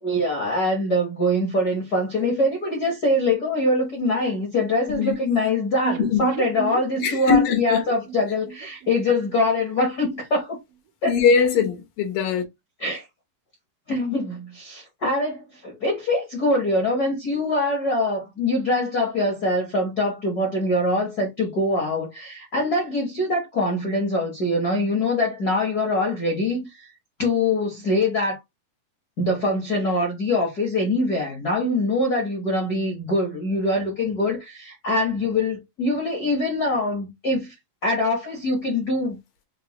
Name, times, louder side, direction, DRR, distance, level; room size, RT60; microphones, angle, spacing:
voice 1, 0.0-10.6 11.0-11.1 12.8-13.1 13.9-26.9 27.2-28.4 29.2-37.5 37.8-39.2, left 1 dB, 70° left, 0.9 m, -23 dB
sound 1, 5.8-9.7 10.0-10.1 10.3-10.4, right 10 dB, 85° right, 2.5 m, -34 dB
voice 2, 7.0-7.8 11.0-12.4, left 6 dB, 85° left, 2.8 m, -21 dB
6.4 x 2.2 x 2.9 m
omnidirectional pair, 3.8 m